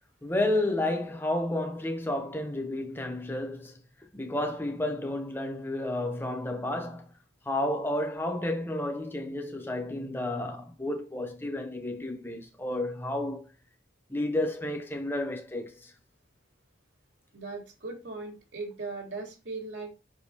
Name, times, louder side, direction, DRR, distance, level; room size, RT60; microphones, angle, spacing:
voice 1, 0.2-3.8 4.1-7.1 7.4-13.5 14.1-15.9, left 1 dB, 10° left, 0.9 m, -31 dB
voice 2, 17.3-19.9, right 3 dB, 75° right, 2.7 m, -38 dB
5.9 x 5.3 x 3.4 m
head